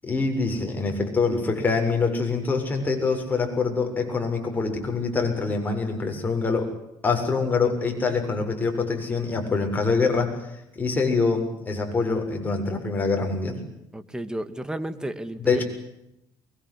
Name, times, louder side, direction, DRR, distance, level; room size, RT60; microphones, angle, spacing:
voice 1, 0.0-6.7 7.0-10.5 10.7-13.6 15.4-15.6, left 4 dB, 20° left, 3 dB, 7.3 m, -25 dB
voice 2, 13.9-15.6, right 1 dB, 10° right, 11 dB, 2.1 m, -32 dB
23.5 x 22.5 x 9.9 m, 0.82 s
cardioid pair, 115°, 8 cm